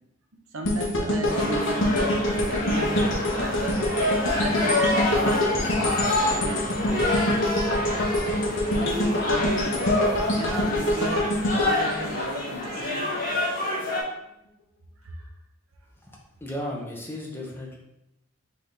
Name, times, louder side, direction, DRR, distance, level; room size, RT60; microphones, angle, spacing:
voice 1, 0.5-3.8 4.3-5.6 6.2-7.4 8.7-9.9 10.4-13.1 15.0-15.2, right 2 dB, 80° right, 3 dB, 0.7 m, -34 dB
sound 1, 0.6-12.8 13.2-13.4, left 1 dB, 60° left, 0.8 m, -26 dB
sound 2, 1.2-14.0, left 2 dB, 45° left, 1.4 m, -27 dB
voice 2, 16.0-17.8, left 1 dB, 10° left, -2 dB, 0.7 m, -35 dB
4.2 x 3.7 x 3.3 m, 0.83 s
head